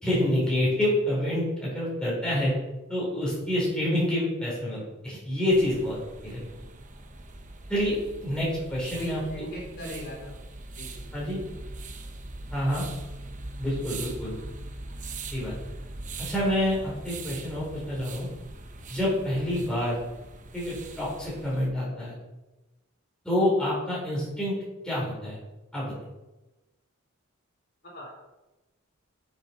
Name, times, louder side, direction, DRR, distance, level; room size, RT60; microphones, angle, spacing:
voice 1, 0.0-2.5 2.9-6.5 7.7-9.4 11.1-11.4 12.5-12.8 13.6-14.4 15.3-15.6 16.2-18.3 18.9-20.0 20.5-22.1 23.2-24.5 24.8-25.4 25.7-25.9, left 1 dB, 5° left, -7 dB, 4.1 m, -27 dB
sound 1, 5.5-21.7, right 2 dB, 40° right, 1.0 m, -41 dB
voice 2, 8.9-10.3 10.8-11.0 11.3-11.4 27.9-28.1, equal, 50° left, -4 dB, 3.9 m, -38 dB
7.9 x 7.5 x 5.9 m, 1.1 s
head